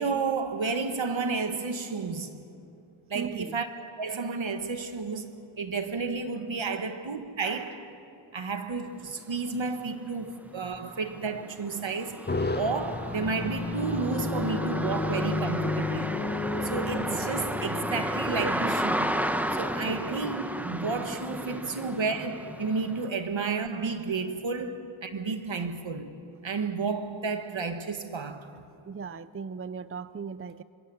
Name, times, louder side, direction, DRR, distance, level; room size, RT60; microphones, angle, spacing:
voice 1, 0.0-2.4 3.1-7.9 8.3-12.3 12.5-16.1 16.6-19.2 19.5-26.2 26.4-28.5, right 4 dB, 70° right, 1.7 m, -32 dB
voice 2, 3.1-3.6 6.7-6.9 18.4-18.5 28.9-30.6, right 5 dB, 30° right, 0.5 m, -38 dB
sound 1, 9.7-9.8 10.2-23.1, equal, 5° right, 1.1 m, -33 dB
sound 2, 12.3-20.0, left 3 dB, 20° left, 0.8 m, -33 dB
25.5 x 24.0 x 7.0 m
wide cardioid pair, 70°, 48 cm